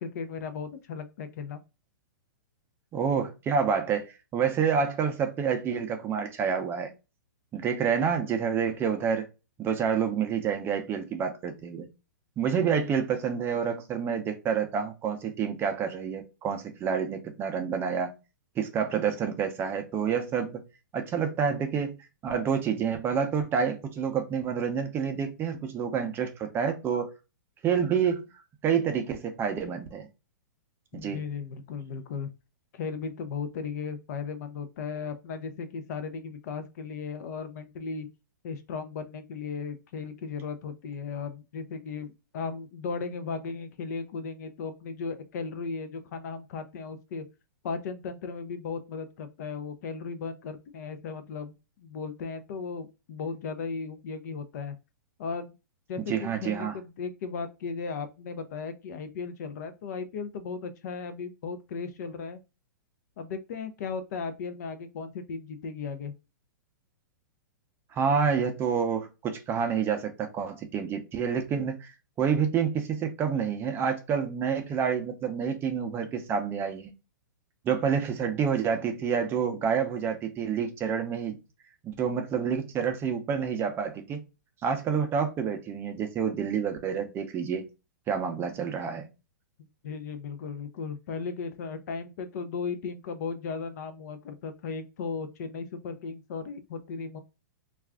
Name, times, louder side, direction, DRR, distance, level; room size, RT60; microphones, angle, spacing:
voice 1, 0.0-1.6 12.7-12.9 30.9-32.3 32.7-38.1 38.4-47.2 47.6-54.8 55.2-55.5 55.9-62.4 63.2-66.1 89.8-97.2, left 5 dB, 55° left, 0.5 m, -36 dB
voice 2, 2.9-6.9 7.5-9.3 9.6-11.9 12.4-18.2 18.6-20.6 20.9-22.0 22.2-27.1 27.6-28.3 28.6-30.1 30.9-31.2 56.1-56.8 67.9-76.9 77.6-81.4 81.8-84.2 84.6-87.7 88.1-89.1, right 7 dB, 20° right, 0.5 m, -28 dB
2.4 x 2.3 x 3.4 m
hypercardioid pair, 130°, 10 cm